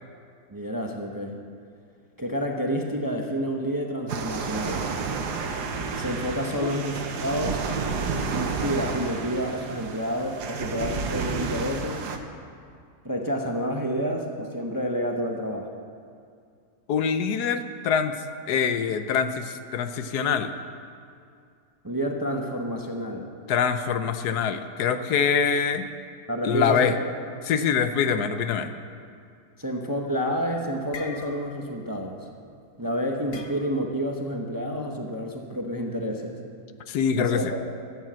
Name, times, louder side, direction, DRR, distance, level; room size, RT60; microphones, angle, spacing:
voice 1, 0.5-1.4 2.2-4.9 6.0-7.7 8.3-12.1 13.0-15.7 21.8-23.3 26.3-27.1 29.6-32.3 32.8-36.4 37.1-37.6, equal, 20° right, 2 dB, 0.7 m, -29 dB
sound 1, 4.1-12.2, right 4 dB, 85° right, 1.5 m, -31 dB
voice 2, 16.9-18.1 18.5-20.5 23.5-25.8 26.4-26.9 27.5-28.7 36.9-37.5, left 7 dB, 80° left, 9 dB, 1.3 m, -24 dB
sound 2, 30.4-32.3 33.3-34.0, left 4 dB, 55° left, 1.2 m, -42 dB
13.0 x 8.9 x 7.5 m, 2.3 s
omnidirectional pair, 1.7 m